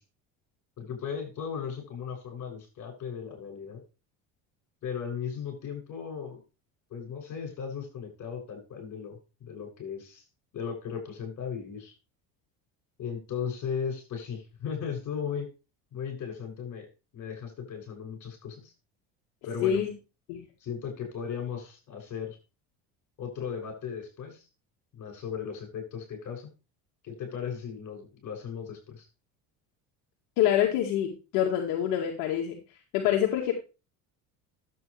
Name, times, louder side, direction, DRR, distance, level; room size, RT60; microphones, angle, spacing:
voice 1, 0.8-3.8 4.8-6.4 6.9-10.2 10.5-11.9 13.0-15.5 15.9-16.9 17.1-18.7 19.4-19.8 20.6-22.4 23.2-24.4 24.9-26.5 27.0-29.1, left 7 dB, 50° left, 2 dB, 7.6 m, -36 dB
voice 2, 19.6-19.9 20.3-20.4 30.4-32.6 32.9-33.5, left 10 dB, 80° left, 1 dB, 2.0 m, -26 dB
12.0 x 8.5 x 3.4 m, 0.29 s
supercardioid pair, 100°, 38 cm